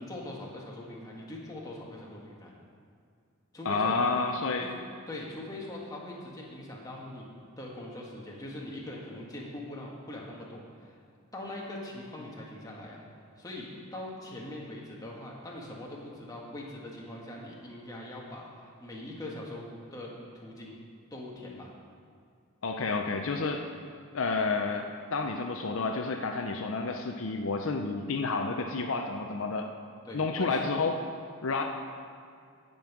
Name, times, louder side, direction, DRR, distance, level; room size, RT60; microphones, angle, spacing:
voice 1, 0.0-2.5 3.5-4.0 4.6-4.7 5.1-11.0 11.3-13.0 13.4-19.7 19.9-20.8 21.1-21.7 30.0-30.7, left 1 dB, 15° left, -3 dB, 1.5 m, -42 dB
voice 2, 3.6-4.7 22.6-23.6 24.1-29.7 30.1-31.0 31.4-31.6, left 4 dB, 60° left, 4 dB, 0.6 m, -30 dB
15.0 x 5.4 x 6.0 m, 2.3 s
head